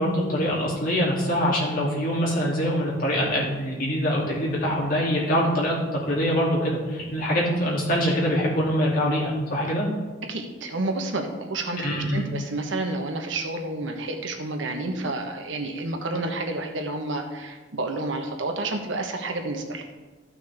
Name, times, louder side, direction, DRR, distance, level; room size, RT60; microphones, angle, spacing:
voice 1, 0.0-5.8 6.0-9.9 11.8-12.3, equal, 50° left, -5 dB, 2.7 m, -24 dB
voice 2, 10.3-19.8, right 2 dB, 80° right, 4 dB, 1.2 m, -30 dB
14.0 x 6.1 x 3.5 m, 1.3 s
head